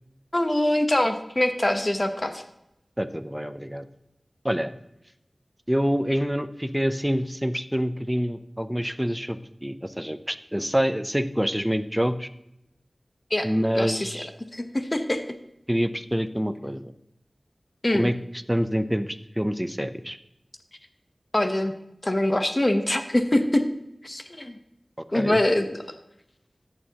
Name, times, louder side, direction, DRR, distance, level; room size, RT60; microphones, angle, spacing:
voice 1, 0.3-2.4 13.3-13.5 13.7-14.2 14.5-15.4 17.8-18.1 21.3-21.7 22.0-23.6 24.0-24.6 25.1-25.8, left 1 dB, 30° left, 8 dB, 1.0 m, -24 dB
voice 2, 3.0-3.9 4.4-4.7 5.7-12.3 13.4-14.3 15.7-16.9 17.9-18.1 18.5-20.2 25.0-25.4, equal, 5° right, 11 dB, 0.6 m, -26 dB
14.0 x 8.8 x 2.9 m, 0.83 s
wide cardioid pair, 65°, 0 cm